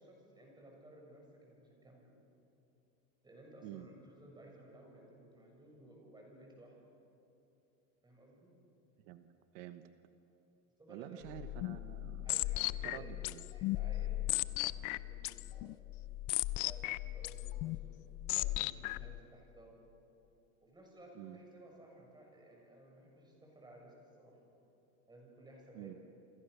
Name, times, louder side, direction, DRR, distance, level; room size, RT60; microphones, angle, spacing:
voice 1, 0.0-2.1 3.2-6.8 8.0-8.5 10.8-11.4 12.2-14.3 14.6-15.8 16.6-18.0 18.3-19.8 20.6-24.4 25.1-26.0, right 1 dB, 10° right, 0 dB, 7.1 m, -57 dB
voice 2, 9.5-9.9 10.9-12.4 12.8-13.4 21.1-21.4 25.7-25.9, right 13 dB, 75° right, 10 dB, 1.3 m, -48 dB
sound 1, 11.3-19.2, left 17 dB, 55° left, 0.7 m, -37 dB
28.5 x 26.5 x 6.8 m, 2.9 s
cardioid pair, 145°, 38 cm